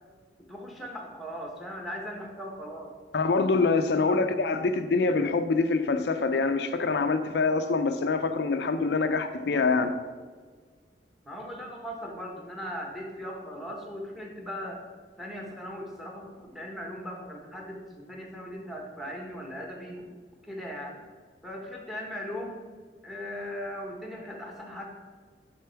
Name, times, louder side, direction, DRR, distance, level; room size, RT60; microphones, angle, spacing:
voice 1, 0.5-2.9 3.9-4.2 11.2-14.8 15.2-20.1 20.5-21.0 21.4-22.6 23.0-24.9, equal, ahead, 0 dB, 1.1 m, -38 dB
voice 2, 3.1-10.0, left 4 dB, 65° left, 8 dB, 0.4 m, -25 dB
6.7 x 5.8 x 4.5 m, 1.5 s
head